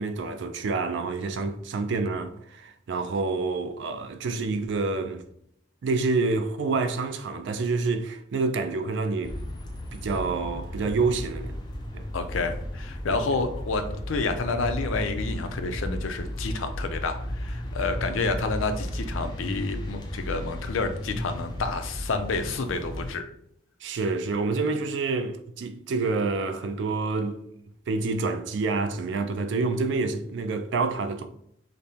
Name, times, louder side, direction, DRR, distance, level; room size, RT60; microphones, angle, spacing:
voice 1, 0.0-5.2 5.8-9.4 9.9-11.6 11.9-12.1 13.1-13.4 23.8-27.4 27.9-31.2, right 3 dB, 65° right, 0.3 m, -28 dB
sound 1, 9.2-23.1, equal, 20° left, 0.4 m, -34 dB
voice 2, 12.1-23.3, left 3 dB, 85° left, 0.5 m, -29 dB
5.1 x 2.0 x 2.8 m
head